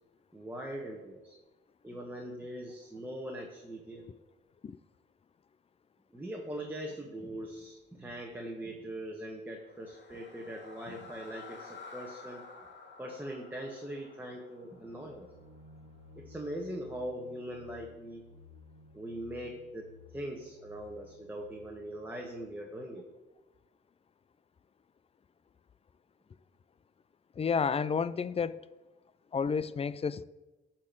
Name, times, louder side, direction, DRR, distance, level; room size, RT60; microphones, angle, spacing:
voice 1, 0.3-1.4 1.8-4.1 6.1-12.5 13.0-15.3 16.1-18.3 18.9-23.1, right 1 dB, 10° right, 1.4 m, -41 dB
sound 1, 9.6-15.8, left 4 dB, 60° left, 2.8 m, -51 dB
sound 2, 14.7-22.5, left 3 dB, 85° right, 1.1 m, -56 dB
voice 2, 27.4-28.7 29.3-30.2, left 6 dB, 30° left, 0.4 m, -31 dB
13.0 x 4.4 x 7.7 m
cardioid pair, 90°, 20 cm